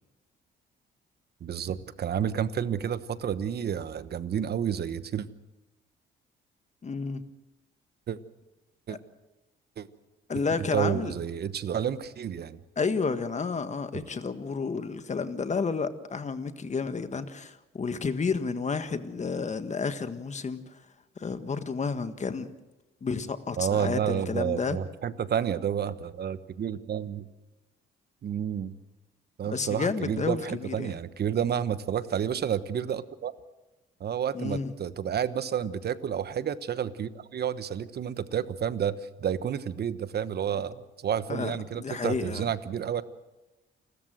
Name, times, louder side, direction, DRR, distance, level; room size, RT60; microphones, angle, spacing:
voice 1, 1.4-5.3 8.1-8.2 8.9-9.0 9.8-9.9 10.7-12.6 23.6-27.3 28.2-28.8 29.4-33.3 34.0-43.0, right 8 dB, 55° right, 13 dB, 1.2 m, -30 dB
voice 2, 6.8-7.2 8.9-9.0 10.3-11.1 12.8-20.8 21.2-22.5 23.0-24.8 29.5-30.9 34.3-34.7 41.3-42.4, left 5 dB, 35° left, 10 dB, 1.6 m, -31 dB
29.0 x 13.5 x 7.8 m, 1.1 s
cardioid pair, 90°, 20 cm